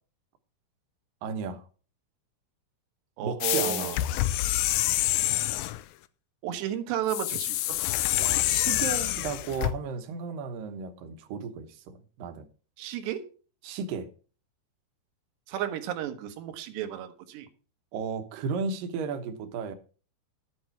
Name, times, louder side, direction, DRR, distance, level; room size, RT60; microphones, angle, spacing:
voice 1, 1.2-1.7 3.2-4.0 8.1-12.5 13.6-14.1 17.9-19.7, right 5 dB, 65° right, 2.4 m, -34 dB
voice 2, 3.2-4.0 6.4-7.8 12.8-13.3 15.5-17.5, right 11 dB, 90° right, 3.3 m, -33 dB
sound 1, 3.4-5.8 7.1-9.7, left 15 dB, 85° left, 2.0 m, -27 dB
11.5 x 8.7 x 4.6 m
omnidirectional pair, 4.8 m